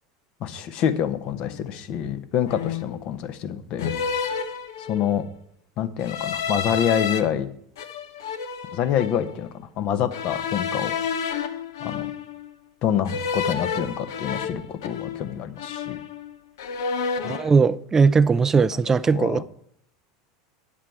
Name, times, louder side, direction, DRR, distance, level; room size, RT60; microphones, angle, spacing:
voice 1, 0.4-3.9 4.8-5.3 5.8-7.5 8.7-11.0 11.8-12.1 12.8-16.0 18.7-18.8 19.1-19.4, left 9 dB, 50° left, 1.0 m, -26 dB
sound 1, 1.4-1.6 2.5-3.0 3.8-5.2 6.0-7.2 7.8-9.3 10.1-12.5 13.1-15.3 15.6-16.3 16.6-17.5, left 6 dB, 75° left, 0.9 m, -30 dB
voice 2, 17.2-19.4, right 5 dB, 20° right, 0.4 m, -19 dB
10.0 x 7.5 x 4.6 m
hypercardioid pair, 90°, 2 cm